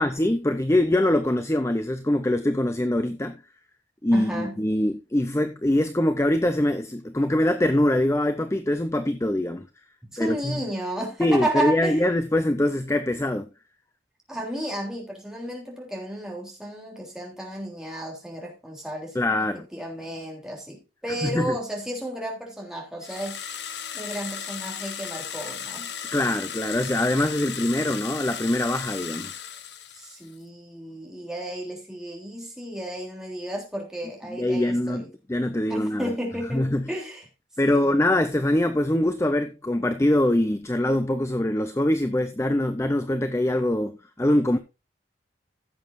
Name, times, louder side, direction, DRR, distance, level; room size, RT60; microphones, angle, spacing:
voice 1, 0.0-3.4 4.0-9.7 10.2-10.6 11.2-13.5 19.1-19.7 21.1-21.6 26.1-29.4 34.3-35.0 35.3-36.1 36.5-36.8 37.6-44.6, left 1 dB, 15° left, 0.5 m, -23 dB
voice 2, 4.1-4.6 10.1-12.0 14.3-19.2 19.7-23.4 23.9-25.9 29.9-35.1 35.7-37.2 37.6-38.0, right 1 dB, 5° right, 3.3 m, -33 dB
sound 1, 23.0-30.3, left 8 dB, 65° left, 1.0 m, -36 dB
15.5 x 7.6 x 2.6 m
head